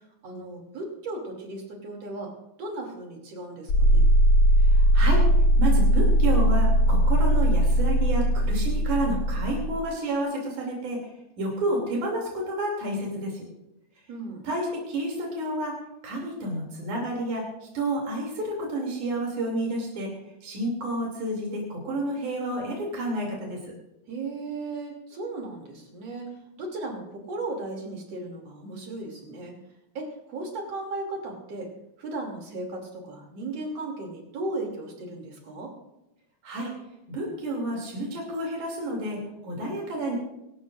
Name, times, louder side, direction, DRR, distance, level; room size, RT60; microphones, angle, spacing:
voice 1, 0.2-2.3 2.6-4.1 14.1-14.5 24.1-26.3 26.6-29.5 30.0-31.7 32.0-35.7, right 2 dB, 60° right, 1 dB, 3.8 m, -36 dB
sound 1, 3.7-9.8, right 1 dB, 45° left, 4.0 m, -20 dB
voice 2, 4.7-5.2 5.6-11.0 11.4-13.4 14.4-15.7 16.0-17.4 17.7-20.1 20.4-23.6 36.4-36.7 37.1-40.2, right 1 dB, 85° right, -1 dB, 4.2 m, -30 dB
24.0 x 13.0 x 2.6 m, 0.92 s
omnidirectional pair, 3.4 m